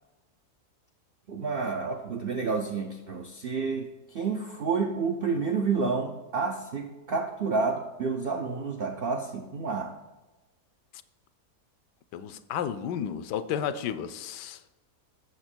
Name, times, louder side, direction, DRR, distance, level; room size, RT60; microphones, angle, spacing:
voice 1, 1.3-9.9, right 4 dB, 85° right, 4 dB, 0.5 m, -30 dB
voice 2, 12.1-14.6, left 9 dB, 85° left, 13 dB, 1.2 m, -32 dB
8.0 x 6.8 x 4.4 m, 1.1 s
omnidirectional pair, 1.8 m